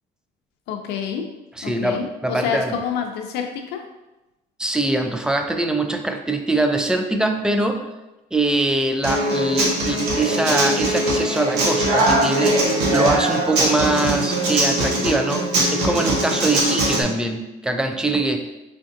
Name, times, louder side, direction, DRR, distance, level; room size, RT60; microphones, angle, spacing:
voice 1, 0.7-1.3 1.6-3.8, left 7 dB, 80° left, 3 dB, 0.5 m, -28 dB
voice 2, 1.6-2.7 4.6-7.9 8.3-12.6 12.9-18.5, right 2 dB, 5° right, 6 dB, 0.3 m, -23 dB
Human voice / Acoustic guitar, 9.0-17.0, right 1 dB, 90° right, 0.9 m, -21 dB
5.0 x 2.5 x 2.5 m, 1.0 s
cardioid pair, 110°, 17 cm